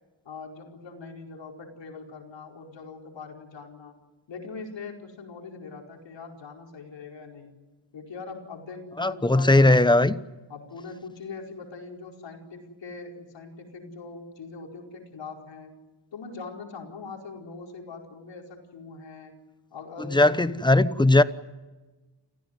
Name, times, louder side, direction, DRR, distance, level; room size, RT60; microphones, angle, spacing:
voice 1, 0.2-4.0 4.3-7.5 7.9-9.8 10.5-15.7 16.1-19.3 19.7-20.9, left 4 dB, 70° left, 5.0 m, -42 dB
voice 2, 9.0-10.2 20.1-21.2, left 2 dB, 10° left, 1.0 m, -19 dB
29.0 x 16.0 x 9.8 m
cardioid pair, 100°, 45 cm